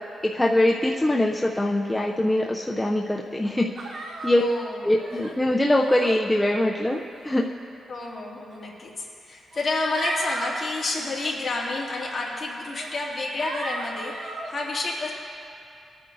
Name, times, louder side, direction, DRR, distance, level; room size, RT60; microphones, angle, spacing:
voice 1, 0.2-3.7 4.2-4.4 4.8-7.4, left 1 dB, 10° left, -1 dB, 0.5 m, -23 dB
sound 1, 3.8-4.4 5.0-5.3 5.8-6.2 7.1-7.5 8.5-8.6 9.5-10.5 10.9-11.3 11.9-12.1 12.7-12.9 13.4-14.5, right 2 dB, 65° right, 1.3 m, -35 dB
voice 2, 4.4-4.8 5.1-5.3 7.9-15.1, left 2 dB, 40° left, -5 dB, 2.4 m, -30 dB
22.0 x 9.3 x 2.7 m, 2.6 s
cardioid pair, 120°, 0 cm